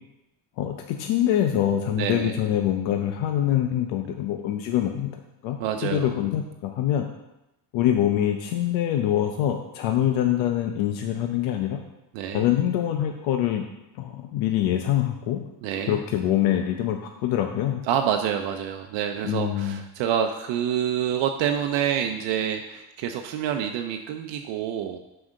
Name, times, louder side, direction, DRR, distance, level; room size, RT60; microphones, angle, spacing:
voice 1, 0.6-5.1 5.4-7.1 7.7-11.8 12.3-13.6 14.0-15.4 15.9-17.8 19.2-19.8, left 11 dB, 80° left, 4 dB, 0.8 m, -24 dB
voice 2, 2.0-2.4 5.6-6.1 12.1-12.4 15.6-16.0 17.9-25.0, right 9 dB, 70° right, 5 dB, 0.7 m, -27 dB
6.1 x 5.0 x 6.3 m, 0.92 s
cardioid pair, 135°, 46 cm